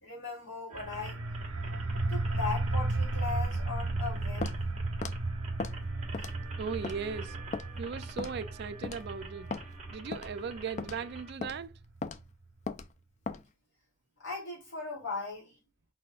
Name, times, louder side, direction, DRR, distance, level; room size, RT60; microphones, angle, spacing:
voice 1, 0.0-1.2 2.1-4.5 14.2-15.6, left 4 dB, 60° left, 2.9 m, -38 dB
sound 1, 0.7-11.3, right 3 dB, 35° right, 1.3 m, -49 dB
sound 2, 0.7-12.2, right 2 dB, 70° right, 0.9 m, -34 dB
Walk footsteps, 4.4-4.6 5.0-5.2 5.6-5.8 6.1-6.4 6.8-7.0 7.5-7.7 8.2-8.4 8.8-9.0 9.5-9.6 10.1-10.3 10.8-11.0 11.4-11.6 12.0-12.2 12.7-12.9 13.3-13.4, left 3 dB, 35° left, 0.4 m, -36 dB
voice 2, 6.6-7.4 7.8-9.5 9.9-11.7, right 5 dB, 50° right, 0.4 m, -38 dB
4.2 x 4.2 x 2.3 m
head